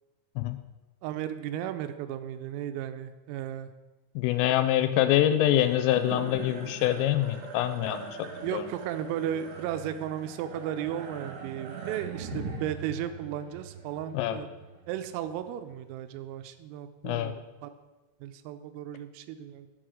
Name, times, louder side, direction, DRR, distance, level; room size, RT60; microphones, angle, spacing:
voice 1, 1.0-3.7 8.4-14.5 14.9-17.7 18.2-19.7, right 10 dB, 85° right, 10 dB, 3.2 m, -35 dB
voice 2, 4.2-8.1 8.5-8.7 14.1-14.4 17.0-17.3, left 12 dB, 85° left, 10 dB, 3.2 m, -25 dB
sound 1, 5.5-16.0, right 6 dB, 70° right, 2.8 m, -42 dB
6.6 x 6.3 x 6.2 m, 1.2 s
omnidirectional pair, 5.9 m